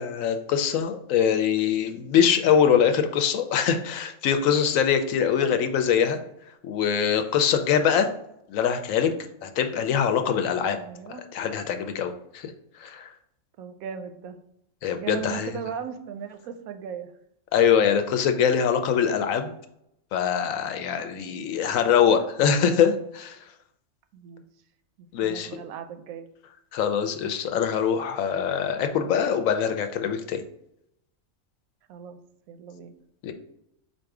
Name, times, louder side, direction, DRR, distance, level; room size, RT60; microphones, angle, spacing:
voice 1, 0.0-6.2 6.6-8.1 8.5-9.1 9.4-10.8 11.3-12.5 12.8-13.1 14.8-15.5 17.5-19.5 20.1-23.4 25.1-25.5 26.7-30.4 33.2-33.3, left 7 dB, 75° left, 7 dB, 1.0 m, -23 dB
voice 2, 10.9-11.3 13.6-14.4 15.0-17.1 24.1-24.4 25.0-26.3 31.9-32.2 32.5-32.9, right 7 dB, 85° right, 8 dB, 1.0 m, -37 dB
4.2 x 2.6 x 4.6 m, 0.77 s
omnidirectional pair, 1.4 m